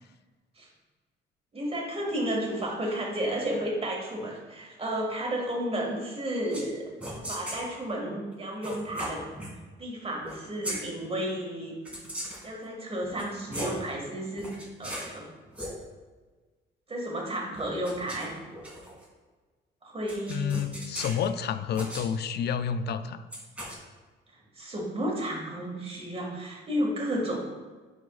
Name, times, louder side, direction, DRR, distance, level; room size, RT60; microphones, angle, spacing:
voice 1, 1.5-9.2 9.8-11.7 12.4-14.5 14.8-15.3 16.9-18.3 19.8-20.6 24.5-27.4, right 1 dB, 30° right, -1 dB, 1.9 m, -32 dB
sound 1, 6.5-6.7 7.0-7.7 8.6-9.5 10.2-10.8 11.8-12.5 13.0-13.8 14.4-15.1 15.5-15.7 17.5-19.0 20.1-21.3 21.7-22.1 23.3-23.8, equal, 5° right, 2.0 m, -38 dB
voice 2, 20.3-23.2, left 7 dB, 55° left, 11 dB, 0.4 m, -29 dB
9.4 x 5.0 x 2.4 m, 1.3 s
cardioid pair, 90°, 20 cm